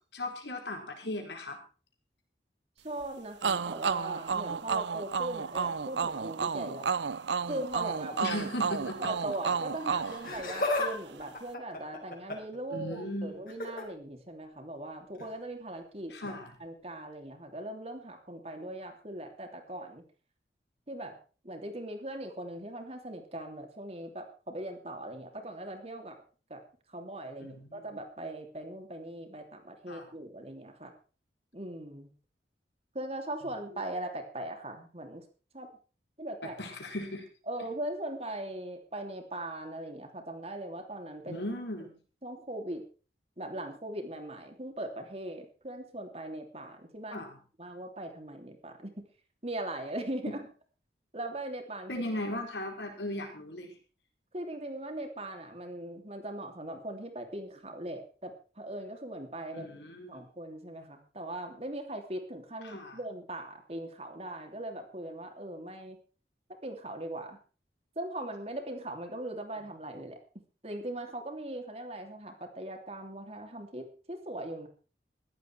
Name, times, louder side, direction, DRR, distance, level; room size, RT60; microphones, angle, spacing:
voice 1, 0.1-1.6 8.2-9.1 12.7-13.5 16.1-16.5 27.4-27.8 29.9-30.1 33.7-33.8 36.4-37.3 41.3-41.9 47.1-47.4 50.3-50.4 51.9-53.7 59.5-60.3 62.6-63.0, left 1 dB, 80° left, 3 dB, 4.7 m, -37 dB
voice 2, 2.8-6.9 7.5-8.2 9.0-16.3 16.6-20.0 20.9-21.2 21.4-26.2 26.5-26.6 26.9-30.9 31.5-32.1 32.9-35.2 35.5-35.7 36.2-36.5 37.5-41.4 42.2-42.8 43.4-47.2 47.6-49.1 49.4-50.4 51.1-52.0 54.3-59.7 60.1-66.0 66.6-67.4 67.9-70.2 70.6-74.7, right 1 dB, 35° right, 4 dB, 3.0 m, -40 dB
sound 1, 3.4-11.0, right 5 dB, 90° right, 0.6 m, -32 dB
Laughter, 10.1-10.9 11.2-12.6 13.5-13.8 15.2-15.3 16.2-16.3, left 2 dB, 50° left, 4.6 m, -33 dB
15.0 x 12.0 x 4.7 m, 0.37 s
head